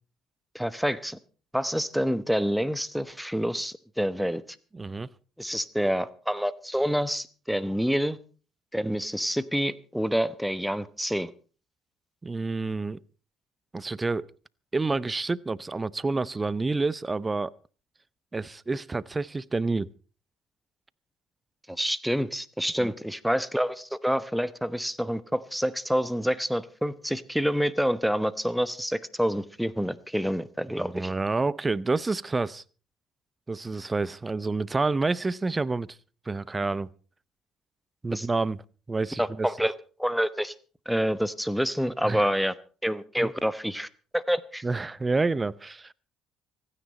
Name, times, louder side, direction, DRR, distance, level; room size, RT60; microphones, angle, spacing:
voice 1, 0.5-1.2 1.5-4.4 5.4-8.2 8.7-11.3 21.7-31.1 38.1-38.3 39.2-39.7 40.0-40.5 40.9-42.5 42.8-43.9 44.1-44.6, equal, ahead, 1.1 m, -27 dB
voice 2, 4.7-5.1 12.2-13.0 13.7-14.3 14.7-17.5 18.3-19.9 22.8-22.9 30.8-32.6 33.5-35.9 36.3-36.9 38.0-38.6 38.9-39.5 42.0-42.2 43.2-43.3 44.6-45.9, right 3 dB, 20° right, 0.6 m, -28 dB
25.5 x 10.0 x 4.2 m
figure-of-eight pair, 50°, 0 cm